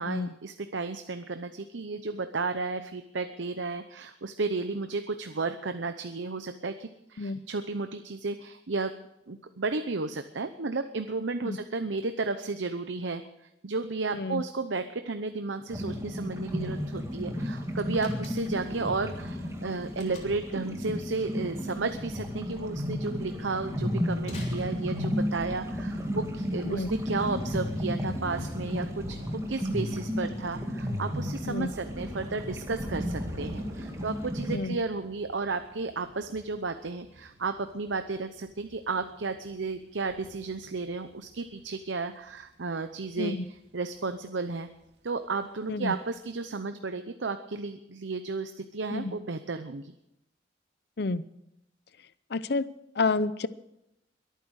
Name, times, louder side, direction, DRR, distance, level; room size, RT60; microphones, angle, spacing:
voice 1, 0.0-8.9 9.3-13.2 13.6-44.7 45.0-50.0, right 3 dB, 80° right, 9 dB, 0.8 m, -33 dB
sound 1, 15.7-34.6, equal, 15° right, 2.0 m, -33 dB
Slam, 17.9-18.7 20.0-20.6 24.2-25.3, left 3 dB, 40° left, 3.5 m, -48 dB
Thunder / Rain, 27.6-44.2 44.5-45.0 45.3-45.4, right 1 dB, 60° right, 2.7 m, -48 dB
voice 2, 52.3-52.7 53.0-53.5, left 3 dB, 60° left, 16 dB, 0.7 m, -29 dB
22.5 x 9.3 x 6.5 m, 0.85 s
head